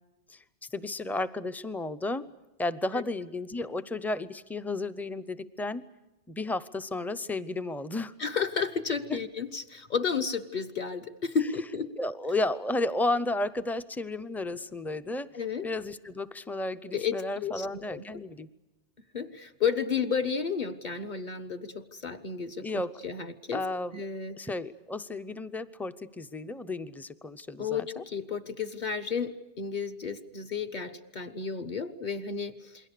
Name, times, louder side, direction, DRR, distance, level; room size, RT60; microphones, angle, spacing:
voice 1, 0.7-2.3 2.6-5.8 6.3-8.1 9.1-9.2 12.0-15.3 15.6-18.5 22.6-23.0 23.5-24.0 24.3-28.0, left 2 dB, ahead, 11 dB, 0.5 m, -33 dB
voice 2, 8.2-11.9 15.3-15.7 16.9-18.0 19.1-23.6 23.9-24.4 27.6-32.9, left 6 dB, 45° left, 7 dB, 1.3 m, -32 dB
28.0 x 22.0 x 6.7 m, 1.0 s
omnidirectional pair, 1.1 m